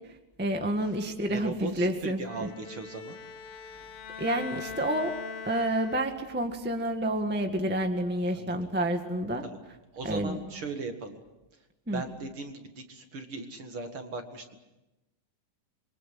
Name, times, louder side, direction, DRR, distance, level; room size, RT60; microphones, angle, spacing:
voice 1, 0.4-2.5 4.2-5.2 5.4-9.4 10.0-10.4 11.9-12.0, right 1 dB, 10° right, 4 dB, 0.5 m, -29 dB
voice 2, 1.3-3.2 8.3-8.6 9.4-9.6 9.9-11.2 11.9-14.6, right 3 dB, 45° right, 5 dB, 2.5 m, -38 dB
Bowed string instrument, 2.2-6.4, left 5 dB, 75° left, 1.3 m, -41 dB
27.0 x 23.5 x 7.8 m, 1.0 s
omnidirectional pair, 4.0 m